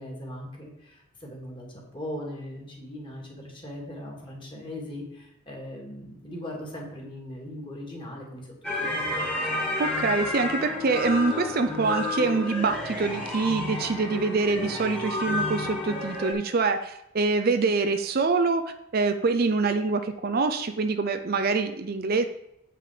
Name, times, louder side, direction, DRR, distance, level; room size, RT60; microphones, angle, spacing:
voice 1, 0.0-9.1, left 1 dB, 25° left, -1 dB, 2.2 m, -39 dB
sound 1, 8.6-16.3, left 2 dB, 5° left, 1.8 m, -30 dB
voice 2, 9.8-18.6 18.9-22.3, right 4 dB, 45° right, 8 dB, 0.5 m, -25 dB
8.2 x 5.8 x 5.0 m, 0.81 s
head